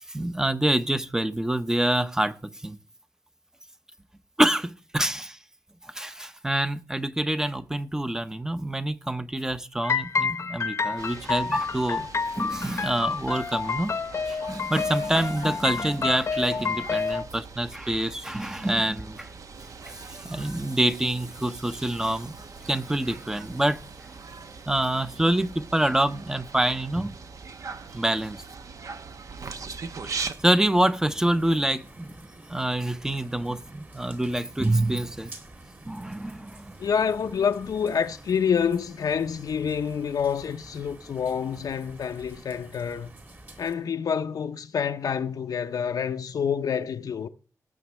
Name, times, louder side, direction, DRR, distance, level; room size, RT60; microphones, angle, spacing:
voice 1, 0.1-2.8 4.4-5.4 5.9-12.1 12.4-14.0 14.3-19.3 19.9-22.3 22.7-23.8 24.7-27.2 27.9-28.4 30.1-32.1 32.5-35.3 35.9-36.7, right 1 dB, 10° right, 0.7 m, -26 dB
sound 1, 9.8-17.2, left 5 dB, 50° left, 0.8 m, -29 dB
sound 2, 11.0-30.3, right 5 dB, 65° right, 1.0 m, -41 dB
sound 3, 30.1-43.7, right 2 dB, 30° right, 2.1 m, -48 dB
voice 2, 36.8-43.1 43.6-47.3, left 7 dB, 85° left, 0.7 m, -27 dB
18.5 x 7.2 x 3.2 m
wide cardioid pair, 165°, 6 cm